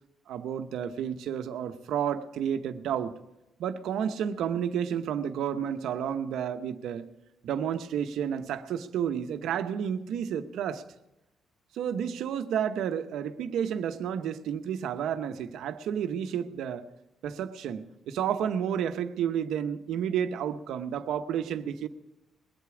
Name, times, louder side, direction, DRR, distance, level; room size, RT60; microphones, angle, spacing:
voice 1, 0.3-3.2 3.6-7.1 7.4-10.8 11.7-16.9 17.2-21.9, right 8 dB, 80° right, 0.8 m, -31 dB
21.0 x 8.4 x 4.9 m
cardioid pair, 90°, 0 cm